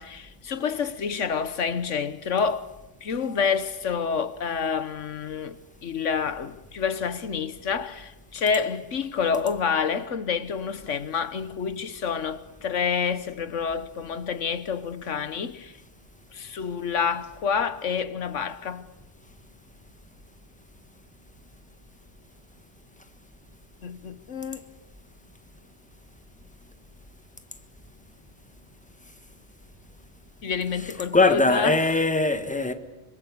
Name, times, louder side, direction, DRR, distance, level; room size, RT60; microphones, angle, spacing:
voice 1, 0.0-2.7 3.0-15.7 16.3-18.9 23.8-24.6 30.4-31.8, left 6 dB, 85° left, 1.5 m, -28 dB
voice 2, 31.1-32.7, left 3 dB, 5° left, 1.5 m, -21 dB
27.0 x 25.0 x 8.6 m
omnidirectional pair, 1.2 m